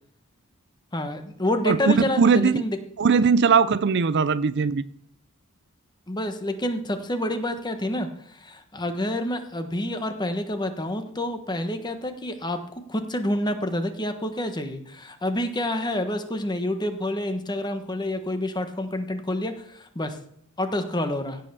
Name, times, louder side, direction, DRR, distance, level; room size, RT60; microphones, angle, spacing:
voice 1, 0.9-2.8 6.1-12.6 12.9-20.2 20.6-21.4, left 1 dB, 20° left, 1.3 m, -28 dB
voice 2, 1.7-2.6 3.0-4.8, right 5 dB, 55° right, 0.5 m, -20 dB
16.5 x 5.6 x 6.9 m
head